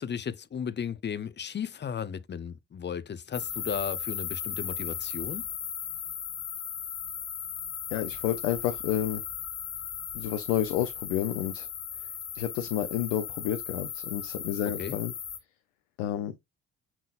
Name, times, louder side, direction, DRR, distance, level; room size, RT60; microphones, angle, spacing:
voice 1, 0.0-5.4 14.8-15.0, left 7 dB, 30° left, 0.6 m, -35 dB
sound 1, 3.3-15.4, left 8 dB, 50° left, 1.8 m, -37 dB
voice 2, 7.9-9.2 10.1-11.7 12.0-12.1 12.3-15.1 16.0-16.3, left 11 dB, 85° left, 0.6 m, -30 dB
5.8 x 3.7 x 2.4 m
hypercardioid pair, 55°, 36 cm